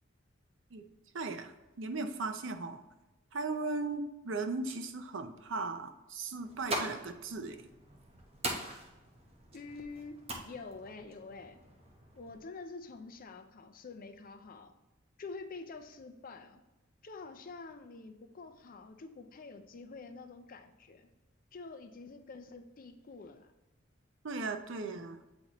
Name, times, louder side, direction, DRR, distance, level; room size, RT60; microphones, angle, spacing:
voice 1, 1.1-2.8 3.3-7.6 24.2-25.2, right 3 dB, 70° right, 7 dB, 0.6 m, -37 dB
sound 1, 6.4-12.4, right 1 dB, 30° right, 0.9 m, -42 dB
voice 2, 9.5-11.6 12.2-14.7 15.2-16.6 17.0-21.1 21.5-23.5, left 3 dB, 45° left, 7 dB, 0.5 m, -47 dB
7.7 x 4.1 x 3.0 m, 1.1 s
head